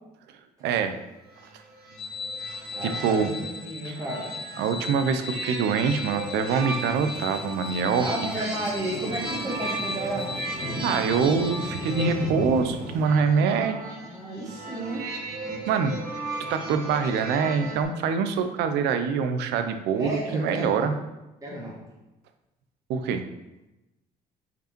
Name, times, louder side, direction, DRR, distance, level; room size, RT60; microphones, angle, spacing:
voice 1, 0.6-0.9 2.8-3.3 3.8-4.0 4.6-8.5 10.8-13.8 15.7-16.0 16.5-20.9 22.9-23.2, right 6 dB, 85° right, 8 dB, 0.7 m, -25 dB
sound 1, 1.3-17.8, right 2 dB, 60° right, 2.0 m, -36 dB
sound 2, 2.0-12.1, left 4 dB, 35° left, 0.4 m, -38 dB
voice 2, 2.8-4.3 8.0-10.3 13.4-15.1 19.9-20.9 21.4-21.8, right 1 dB, 20° right, -4 dB, 1.6 m, -33 dB
Thunder / Rain, 6.7-13.0, left 1 dB, 50° left, 1.9 m, -36 dB
5.3 x 5.3 x 4.4 m, 0.99 s
cardioid pair, 110°, 17 cm